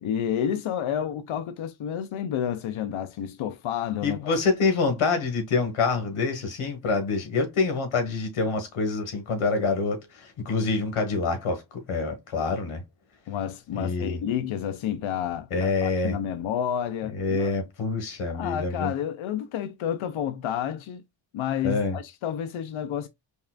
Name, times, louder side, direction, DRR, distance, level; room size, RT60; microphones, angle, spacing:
voice 1, 0.0-4.3 13.3-17.5 18.3-21.0 21.3-23.1, left 9 dB, 75° left, 0.6 m, -30 dB
voice 2, 4.0-12.8 13.7-14.2 15.5-16.1 17.2-18.9 21.6-22.0, left 4 dB, 90° left, 1.7 m, -26 dB
5.3 x 2.5 x 2.2 m
wide cardioid pair, 105°, 49 cm